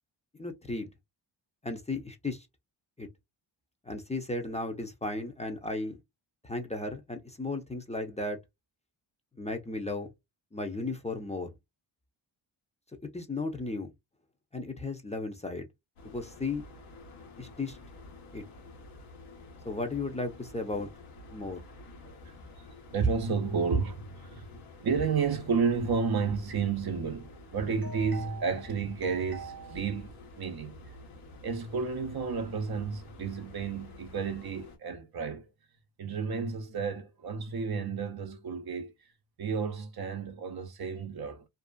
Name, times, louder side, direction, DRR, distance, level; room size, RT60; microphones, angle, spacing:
voice 1, 0.4-0.9 1.6-2.5 3.0-3.1 3.9-6.0 6.4-8.4 9.4-10.1 10.5-11.5 13.1-13.9 14.5-15.7 16.1-16.6 17.4-17.8 18.3-18.4 19.6-20.9 21.3-21.6, left 2 dB, 15° left, 0.6 m, -35 dB
sound 1, 16.0-34.8, left 2 dB, 90° left, 1.1 m, -50 dB
voice 2, 22.9-24.5 24.8-30.8 31.4-35.5 36.0-38.9 39.4-41.5, right 5 dB, 50° right, 0.6 m, -31 dB
2.6 x 2.3 x 2.2 m
supercardioid pair, 55°, 49 cm